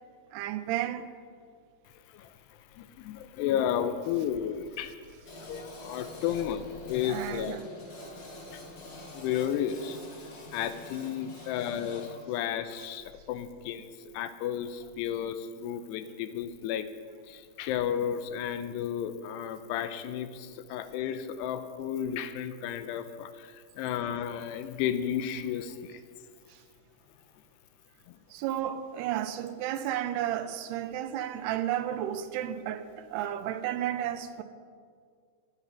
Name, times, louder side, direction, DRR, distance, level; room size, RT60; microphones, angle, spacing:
voice 1, 0.3-1.1 7.0-7.6 26.5-26.6 28.3-34.4, right 11 dB, 80° right, 2.6 m, -32 dB
voice 2, 2.7-5.0 5.4-7.6 8.5-8.6 9.1-16.9 17.3-26.0 28.1-28.2, left 9 dB, 90° left, 2.9 m, -33 dB
sound 1, 5.2-12.1, left 1 dB, 60° left, 6.1 m, -46 dB
16.5 x 11.0 x 5.7 m
omnidirectional pair, 4.7 m